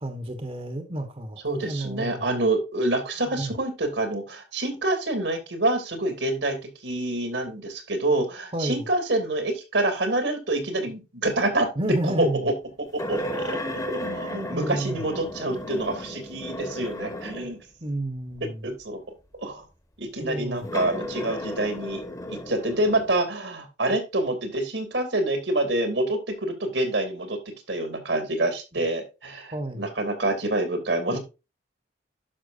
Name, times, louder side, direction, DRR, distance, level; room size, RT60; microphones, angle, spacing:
voice 1, 0.0-2.2 3.3-3.5 8.5-8.9 11.8-12.5 14.0-14.2 14.5-15.0 17.8-18.6 20.2-20.7 29.5-29.9, right 1 dB, 30° right, 1.1 m, -31 dB
voice 2, 1.4-11.7 12.0-12.5 13.1-17.6 18.6-19.0 19.4-19.6 20.0-27.4 27.7-31.2, right 2 dB, 80° right, 2.7 m, -27 dB
sound 1, 13.0-17.6 18.4-18.5 20.6-23.2, left 1 dB, 20° left, 1.2 m, -34 dB
11.5 x 6.0 x 2.6 m
head